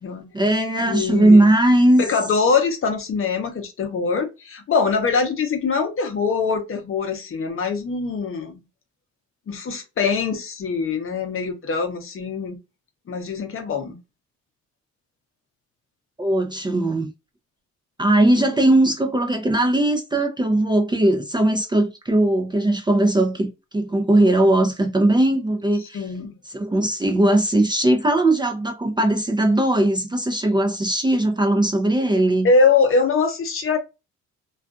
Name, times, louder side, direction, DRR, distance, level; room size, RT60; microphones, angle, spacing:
voice 1, 0.3-2.0 16.2-17.1 18.0-26.1 26.5-32.5, right 1 dB, 15° right, 0.5 m, -19 dB
voice 2, 0.8-1.6 2.0-8.6 9.5-12.6 13.1-14.0 18.4-18.7 25.9-26.3 32.4-33.8, left 4 dB, 45° left, 0.7 m, -23 dB
2.5 x 2.3 x 2.3 m
cardioid pair, 90°, 30 cm